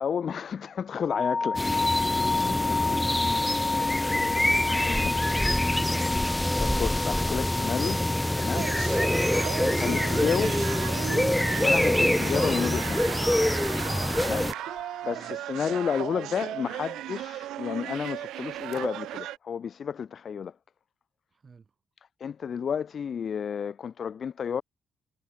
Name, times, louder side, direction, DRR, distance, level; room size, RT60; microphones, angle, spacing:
voice 1, 0.0-1.9 2.9-3.0 4.7-5.1 5.7-5.8 6.6-8.0 8.4-8.7 9.6-10.6 11.6-13.2 14.2-14.5 15.0-20.5 22.2-24.6, left 7 dB, 50° left, 0.4 m, -31 dB
sound 1, 1.1-15.1, left 4 dB, 30° left, 1.0 m, -32 dB
sound 2, 1.6-14.5, left 1 dB, 5° left, 0.7 m, -26 dB
voice 2, 2.1-6.2 15.1-15.5 21.3-21.7, right 5 dB, 35° right, 4.8 m, -50 dB
sound 3, 8.5-19.4, right 14 dB, 85° right, 2.2 m, -36 dB
cardioid pair, 90°, 0 cm